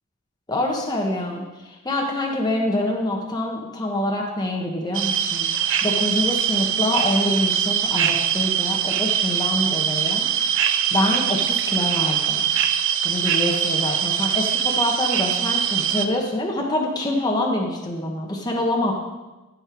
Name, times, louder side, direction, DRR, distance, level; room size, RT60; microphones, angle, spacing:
voice 1, 0.5-1.4 1.8-5.5 5.8-10.3 10.9-12.5 13.0-18.9, left 1 dB, 20° left, -1 dB, 1.2 m, -25 dB
sound 1, 4.9-16.1, right 9 dB, 65° right, 0.6 m, -22 dB
16.5 x 5.7 x 4.5 m, 1.1 s
head